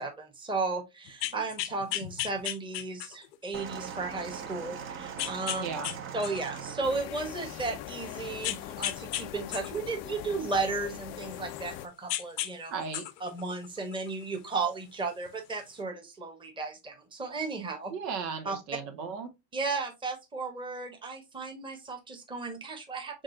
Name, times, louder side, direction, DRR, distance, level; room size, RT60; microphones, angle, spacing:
voice 1, 0.0-5.6 6.1-12.7 13.2-17.9 18.4-18.6 19.5-23.2, right 3 dB, 10° right, 1.1 m, -34 dB
sound 1, 1.1-3.3 3.9-4.0 5.2-6.0 6.2-7.5 8.4-9.2 9.5-11.7 12.1-12.5 12.8-14.2 15.3-15.4, left 13 dB, 85° left, 0.8 m, -35 dB
sound 2, 3.5-7.7 8.5-8.7, right 7 dB, 25° right, 0.6 m, -41 dB
voice 2, 5.6-5.9 12.7-13.0 17.9-19.3, right 5 dB, 80° right, 1.5 m, -35 dB
sound 3, 6.8-11.9, left 12 dB, 35° left, 0.4 m, -41 dB
5.3 x 3.6 x 2.5 m
supercardioid pair, 125°, 49 cm